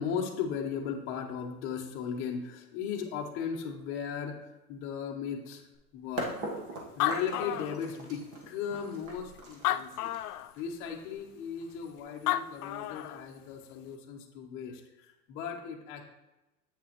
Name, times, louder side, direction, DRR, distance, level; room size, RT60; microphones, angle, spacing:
voice 1, 0.0-6.3 7.0-10.1 10.6-16.0, left 7 dB, 25° left, 0 dB, 0.9 m, -37 dB
sound 1, 5.7-5.8 6.2-12.0, right 1 dB, 30° right, 1.4 m, -40 dB
Animal, 6.6-6.7 6.8-8.3 8.9-9.0 9.5-10.5 12.0-12.1 12.3-13.2, left 13 dB, 75° left, 0.5 m, -31 dB
8.1 x 6.1 x 3.0 m, 0.99 s
hypercardioid pair, 140°, 46 cm